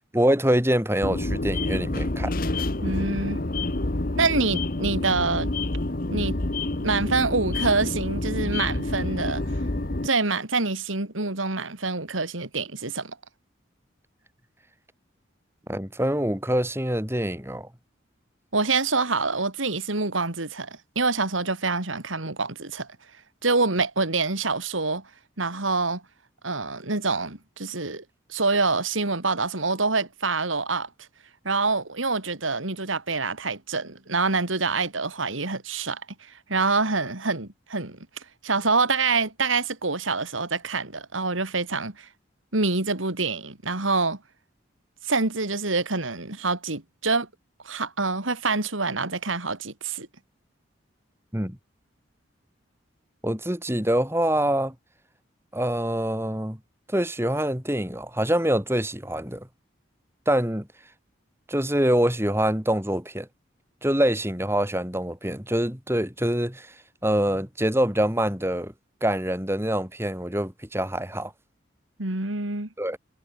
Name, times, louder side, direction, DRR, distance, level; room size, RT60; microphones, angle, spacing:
voice 1, 0.1-2.3 15.7-17.7 51.3-51.6 53.2-54.7 55.5-56.6 56.9-59.5 60.3-60.7 61.5-63.3 63.8-66.7 67.0-68.7 69.0-71.3 72.8-73.0, right 1 dB, 10° right, 5.0 m, -25 dB
sound 1, 1.0-10.1, left 2 dB, 45° left, 1.3 m, -28 dB
voice 2, 2.8-3.4 4.2-5.5 6.1-6.4 6.8-9.5 10.0-13.2 18.5-22.9 23.4-25.0 25.4-26.0 26.4-28.0 28.3-30.9 31.4-38.0 38.4-42.1 42.5-44.2 45.0-47.3 47.6-50.1 72.0-72.7, right 3 dB, 90° right, 3.2 m, -26 dB
head